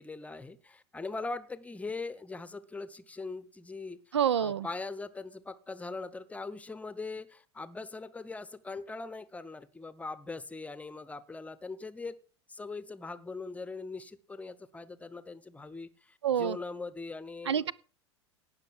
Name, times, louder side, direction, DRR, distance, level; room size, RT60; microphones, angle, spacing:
voice 1, 0.0-4.0 4.4-12.2 12.5-17.7, left 3 dB, 10° left, 0.9 m, -41 dB
voice 2, 4.1-4.7 16.2-16.6 17.5-17.7, right 8 dB, 70° right, 0.6 m, -27 dB
17.5 x 6.4 x 6.4 m
figure-of-eight pair, 85°, 15 cm